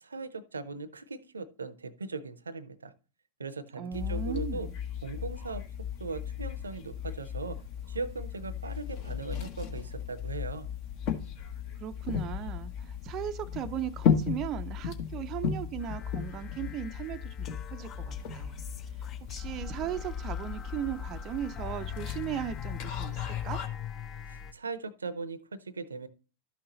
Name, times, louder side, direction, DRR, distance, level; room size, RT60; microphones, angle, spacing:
voice 1, 0.0-2.9 3.4-4.7 5.0-5.6 6.0-7.6 7.9-10.7 24.3-26.1, right 4 dB, 75° right, 0.6 m, -39 dB
voice 2, 3.8-4.7 11.8-18.5 19.2-23.2 23.4-23.6, right 10 dB, 35° right, 0.5 m, -37 dB
sound 1, 3.9-23.7, left 8 dB, 45° left, 1.2 m, -35 dB
sound 2, 15.8-24.5, left 8 dB, 30° left, 0.6 m, -41 dB
12.5 x 6.0 x 2.9 m
figure-of-eight pair, 90°, 0 cm